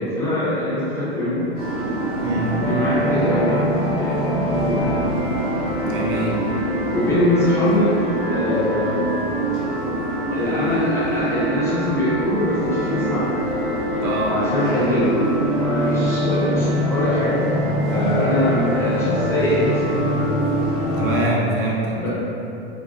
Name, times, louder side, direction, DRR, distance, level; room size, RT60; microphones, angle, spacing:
voice 1, 0.0-1.4 2.6-5.1 6.9-7.9 8.3-9.1 10.3-13.4 14.3-15.3 15.6-17.4 17.9-20.1 21.9-22.1, left 1 dB, 10° left, -11 dB, 0.6 m, -22 dB
sound 1, 1.5-21.2, equal, 20° right, 1.5 m, -23 dB
voice 2, 2.2-2.6 5.8-6.4 14.0-14.4 20.9-22.0, right 2 dB, 50° right, -4 dB, 0.9 m, -24 dB
4.7 x 2.4 x 2.6 m, 3.0 s
hypercardioid pair, 135°, 34 cm